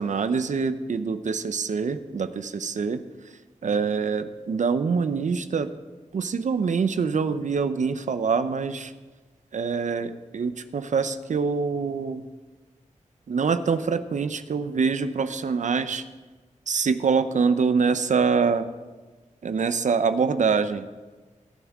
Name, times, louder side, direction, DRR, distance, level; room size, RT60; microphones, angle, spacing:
voice 1, 0.0-3.0 3.6-5.7 6.1-8.9 9.5-12.2 13.3-16.0 16.7-18.7 19.4-20.9, right 5 dB, 70° right, 11 dB, 0.6 m, -25 dB
21.0 x 7.2 x 3.6 m, 1.3 s
wide cardioid pair, 80°, 13 cm